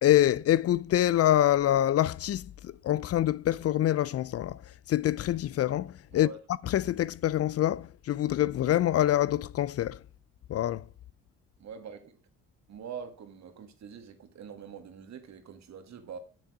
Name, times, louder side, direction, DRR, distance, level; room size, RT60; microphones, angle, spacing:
voice 1, 0.0-6.3 6.6-10.0 10.5-10.9, left 12 dB, 55° left, 0.4 m, -26 dB
voice 2, 11.6-12.2 12.7-16.2, right 7 dB, 65° right, 1.7 m, -44 dB
7.3 x 6.3 x 4.7 m
cardioid pair, 90°, 30 cm